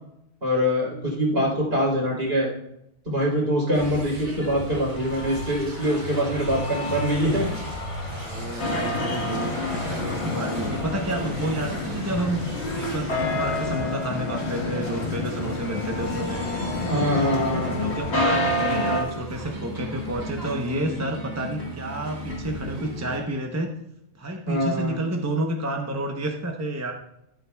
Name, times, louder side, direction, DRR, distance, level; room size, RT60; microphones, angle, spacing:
voice 1, 0.4-2.5 3.1-7.5 8.5-8.6 16.9-17.7 24.5-25.0, equal, 55° right, -3 dB, 3.7 m, -24 dB
sound 1, 3.7-23.2, right 1 dB, 75° right, 3.3 m, -36 dB
sound 2, 4.9-19.0, left 5 dB, 35° left, 0.6 m, -38 dB
voice 2, 8.1-12.4 12.7-16.4 16.9-17.4 17.6-23.7 24.1-26.9, right 1 dB, 15° right, 2 dB, 0.7 m, -30 dB
sound 3, 8.6-19.0, left 2 dB, 65° left, 1.7 m, -28 dB
13.0 x 11.5 x 2.3 m, 0.79 s
omnidirectional pair, 1.2 m